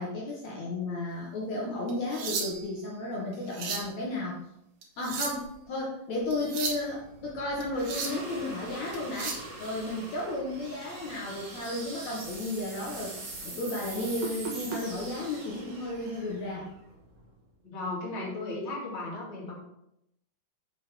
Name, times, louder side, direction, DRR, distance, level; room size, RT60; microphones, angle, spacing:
voice 1, 0.0-4.4 5.0-13.1 13.4-16.7, left 2 dB, 60° left, -3 dB, 2.3 m, -33 dB
sound 1, 1.9-2.8 3.3-3.9 4.8-5.5 6.3-6.9 7.6-8.3 8.9-9.5 11.5-11.7 12.2-12.4 12.9-13.0 14.2-14.8 15.9-16.1, right 5 dB, 65° right, 2.5 m, -35 dB
sound 2, 6.2-17.5, right 2 dB, 35° right, 1.3 m, -43 dB
voice 2, 17.6-19.5, left 2 dB, 25° left, -4 dB, 2.1 m, -35 dB
7.6 x 6.5 x 4.5 m, 0.81 s
omnidirectional pair, 4.0 m